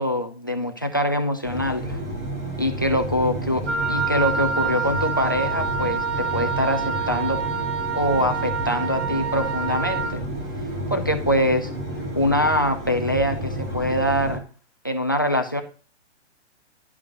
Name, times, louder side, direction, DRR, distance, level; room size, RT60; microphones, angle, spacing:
voice 1, 0.0-2.0 2.6-7.5 7.9-10.2 10.9-11.7 12.2-14.4 14.8-15.6, equal, 20° left, 9 dB, 0.4 m, -24 dB
sound 1, 1.4-14.4, right 1 dB, 15° right, 0.8 m, -31 dB
Wind instrument woodwind instrument, 3.7-10.2, right 5 dB, 80° right, 2.2 m, -27 dB
11.0 x 4.7 x 5.1 m, 0.38 s
hypercardioid pair, 170°, 35 cm